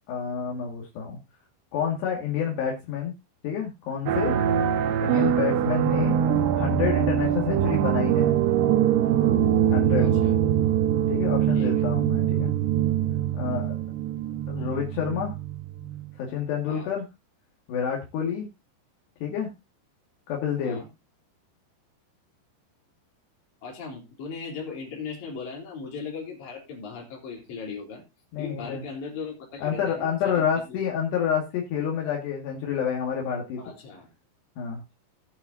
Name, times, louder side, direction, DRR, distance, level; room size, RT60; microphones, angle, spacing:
voice 1, 0.1-1.2 1.7-3.1 3.4-4.4 5.0-6.2 6.6-8.4 9.7-10.1 11.1-12.5 13.3-13.8 14.5-15.3 16.2-17.1 17.7-18.5 19.2-19.5 20.3-20.8 28.3-28.8 29.6-33.6 34.6-34.8, left 8 dB, 70° left, -1 dB, 4.1 m, -28 dB
sound 1, 4.1-16.1, right 10 dB, 75° right, 2.9 m, -23 dB
voice 2, 10.0-10.3 11.5-11.9 16.7-17.0 20.6-20.9 23.6-28.0 28.4-30.8 33.6-34.1, left 5 dB, 45° left, -2 dB, 4.6 m, -38 dB
19.0 x 7.3 x 2.7 m, 0.23 s
omnidirectional pair, 5.1 m